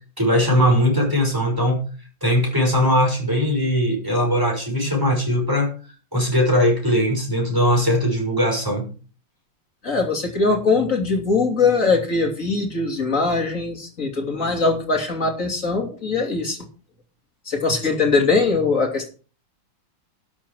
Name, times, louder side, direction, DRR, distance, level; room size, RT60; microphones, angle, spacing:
voice 1, 0.2-1.8 2.2-5.7 6.1-8.9, equal, 10° right, 0 dB, 6.1 m, -20 dB
voice 2, 9.8-16.6 17.5-19.1, left 4 dB, 40° left, 3 dB, 3.3 m, -21 dB
12.5 x 7.7 x 6.2 m, 0.37 s
omnidirectional pair, 2.2 m